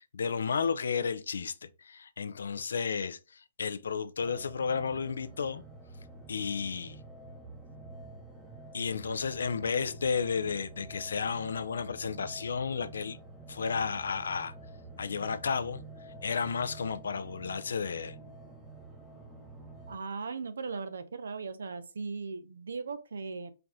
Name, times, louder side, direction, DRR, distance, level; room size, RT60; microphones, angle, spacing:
voice 1, 0.0-5.6 6.3-7.0 8.7-13.2 13.5-14.5 15.0-15.8 16.2-18.2, left 5 dB, 85° left, 0.5 m, -32 dB
sound 1, 4.2-20.0, right 2 dB, 5° right, 0.8 m, -48 dB
voice 2, 19.9-23.5, right 4 dB, 90° right, 0.7 m, -38 dB
4.5 x 2.6 x 3.5 m
hypercardioid pair, 155°, 0 cm